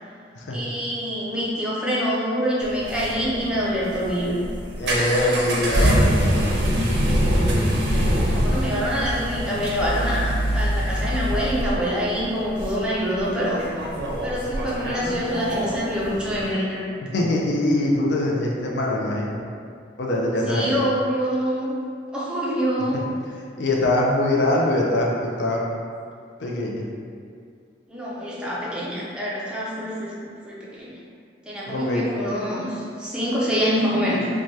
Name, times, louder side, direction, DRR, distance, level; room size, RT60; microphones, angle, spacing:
voice 1, 0.5-4.4 8.2-13.7 14.2-16.9 20.5-21.8 22.1-23.0 27.9-31.0 31.5-34.3, equal, 5° right, -7 dB, 0.5 m, -26 dB
sound 1, 2.6-16.5, equal, 65° right, 0.5 m, -24 dB
voice 2, 4.8-6.6 17.0-19.4 20.0-20.8 22.9-23.2 23.6-25.6 26.4-26.9 31.7-32.1, left 1 dB, 70° left, -2 dB, 0.4 m, -23 dB
3.1 x 2.2 x 2.7 m, 2.3 s
head